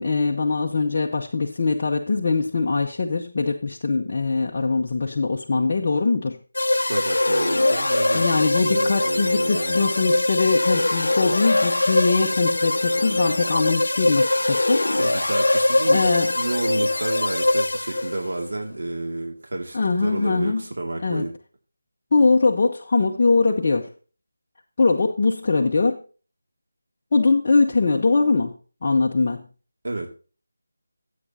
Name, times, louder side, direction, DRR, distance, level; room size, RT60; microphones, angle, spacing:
voice 1, 0.0-6.4 8.1-14.8 15.9-16.3 19.7-20.6 21.0-21.3 22.1-23.9 24.8-26.0 27.1-28.5 28.8-29.4, left 3 dB, 40° left, -1 dB, 1.0 m, -22 dB
sound 1, 6.5-18.3, left 2 dB, 70° left, 0.8 m, -22 dB
voice 2, 6.7-8.3 8.6-9.8 14.9-16.1 16.3-21.3 29.8-30.1, right 2 dB, 60° right, 1 dB, 2.3 m, -30 dB
14.5 x 8.5 x 2.8 m, 0.37 s
figure-of-eight pair, 160°, 0 cm